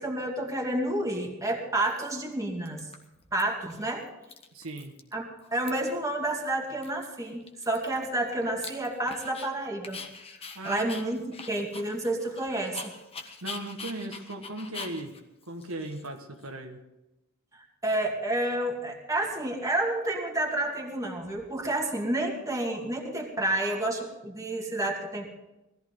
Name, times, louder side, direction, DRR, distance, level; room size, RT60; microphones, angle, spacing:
voice 1, 0.0-2.8 3.3-4.0 5.1-10.0 10.6-12.9 17.5-25.3, right 1 dB, 15° right, 0 dB, 2.2 m, -30 dB
Dog, 1.1-1.2 1.8-2.3 2.6-3.4 3.7-3.8 4.1-5.1 5.4-6.0 6.4-6.5 6.8-9.5 9.8-16.5, left 4 dB, 30° left, 1.4 m, -44 dB
voice 2, 4.5-5.0 10.5-10.9 13.4-15.2 15.5-16.8, right 2 dB, 80° right, 4 dB, 1.6 m, -37 dB
19.0 x 14.0 x 3.9 m, 0.99 s
head